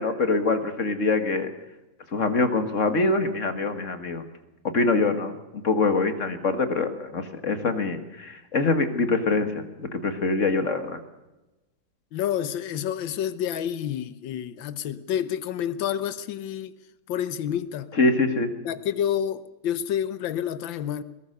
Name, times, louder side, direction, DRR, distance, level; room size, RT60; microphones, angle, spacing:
voice 1, 0.0-1.5 2.1-4.2 4.7-11.0 18.0-18.5, left 3 dB, 40° left, 1.9 m, -24 dB
voice 2, 12.1-16.7 17.1-17.9 18.6-21.0, left 10 dB, 75° left, 1.7 m, -29 dB
21.0 x 18.5 x 6.6 m
omnidirectional pair, 2.1 m